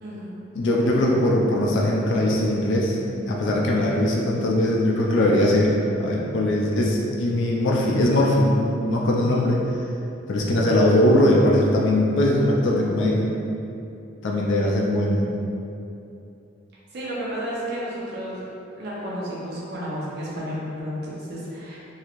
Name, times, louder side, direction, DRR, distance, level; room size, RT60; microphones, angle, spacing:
voice 1, 0.0-0.3 16.9-18.4 18.8-21.8, equal, 55° right, -6 dB, 0.6 m, -32 dB
voice 2, 0.6-3.0 3.3-5.7 6.0-9.6 10.3-13.3 14.2-15.3, left 1 dB, 65° left, -2 dB, 0.4 m, -20 dB
3.0 x 2.7 x 2.4 m, 2.7 s
head